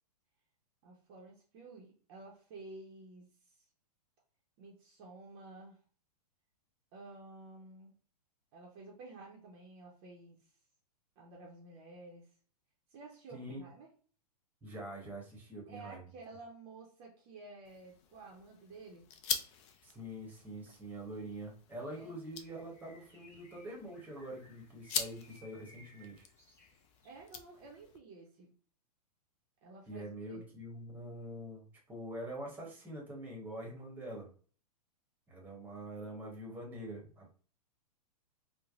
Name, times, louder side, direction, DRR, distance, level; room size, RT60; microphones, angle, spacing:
voice 1, 0.8-3.7 4.6-5.8 6.9-7.9 8.5-10.5 11.2-12.3 12.9-13.9 15.7-19.1 21.9-22.2 27.0-28.5 29.6-30.4, right 3 dB, 40° right, -1 dB, 0.7 m, -52 dB
voice 2, 13.3-13.7 14.6-16.1 19.8-26.3 29.9-34.3 35.3-37.3, right 1 dB, 10° right, -1 dB, 0.9 m, -45 dB
sound 1, 17.6-28.0, left 7 dB, 45° left, 0.4 m, -44 dB
Bird, 22.3-27.2, left 1 dB, 10° left, 1.0 m, -62 dB
3.2 x 2.1 x 2.4 m, 0.41 s
hypercardioid pair, 130°, 21 cm